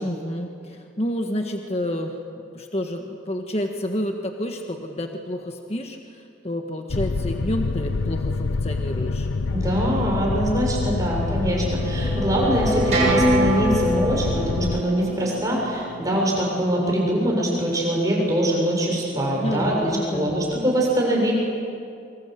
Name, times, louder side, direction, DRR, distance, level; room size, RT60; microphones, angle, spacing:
voice 1, 0.0-9.3 19.1-20.3, left 1 dB, 35° left, 3 dB, 1.6 m, -29 dB
sound 1, 6.9-14.8, left 3 dB, 90° left, 0.7 m, -26 dB
voice 2, 9.5-21.3, right 1 dB, 20° right, -2 dB, 7.1 m, -23 dB
sound 2, 11.5-16.6, right 1 dB, 35° right, 7.5 m, -25 dB
27.0 x 25.5 x 8.0 m, 2.4 s
head